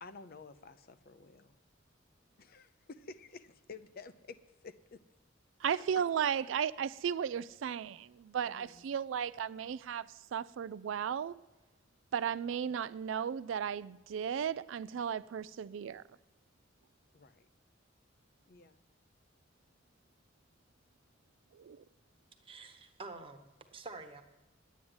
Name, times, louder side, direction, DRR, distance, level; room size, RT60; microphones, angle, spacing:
voice 1, 0.0-1.6 2.4-5.1 5.7-6.0 8.4-8.9 17.1-17.5 18.5-18.8, left 4 dB, 50° left, 0.6 m, -52 dB
voice 2, 5.6-11.4 12.1-16.0 21.6-21.8, right 8 dB, 80° right, 0.3 m, -35 dB
voice 3, 22.4-24.2, right 3 dB, 30° right, 1.2 m, -48 dB
11.0 x 9.3 x 7.9 m
head